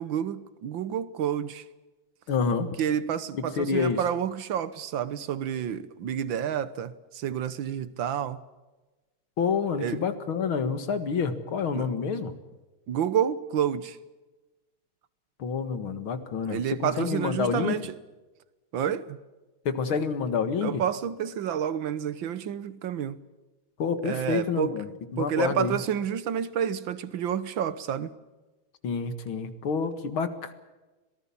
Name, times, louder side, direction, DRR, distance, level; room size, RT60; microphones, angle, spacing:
voice 1, 0.0-1.6 2.8-8.4 9.8-10.0 11.7-11.9 12.9-14.0 16.4-18.0 18.7-19.2 20.6-23.2 24.0-24.8 25.2-28.1, right 9 dB, 65° right, 16 dB, 1.7 m, -29 dB
voice 2, 2.3-2.7 3.3-4.0 9.4-12.3 15.4-17.8 19.7-20.8 23.8-25.8 28.8-30.5, left 5 dB, 70° left, 10 dB, 2.5 m, -28 dB
26.0 x 18.5 x 7.2 m, 1.2 s
omnidirectional pair, 2.4 m